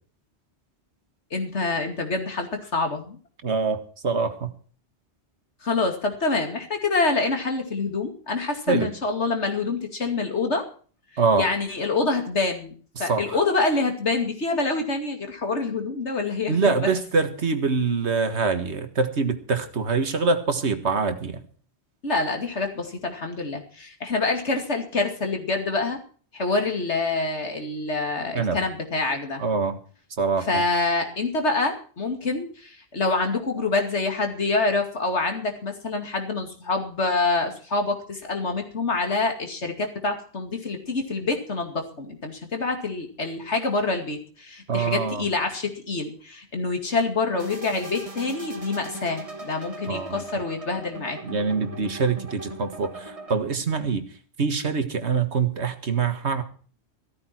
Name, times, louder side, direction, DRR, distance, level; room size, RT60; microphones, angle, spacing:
voice 1, 1.3-3.2 5.6-10.6 11.4-12.7 13.0-16.9 22.0-26.0 26.3-29.4 30.5-51.2, left 3 dB, 90° left, 5 dB, 2.7 m, -26 dB
voice 2, 3.4-4.5 8.7-8.9 11.2-11.5 13.0-13.4 16.5-21.4 28.4-28.6 29.4-29.8 30.2-30.6 44.7-45.3 49.9-50.2 51.2-54.0 54.4-56.4, right 4 dB, 75° right, 9 dB, 1.9 m, -24 dB
sound 1, 47.4-53.4, right 2 dB, 30° right, 1.7 m, -39 dB
15.0 x 13.5 x 4.4 m, 0.42 s
omnidirectional pair, 1.1 m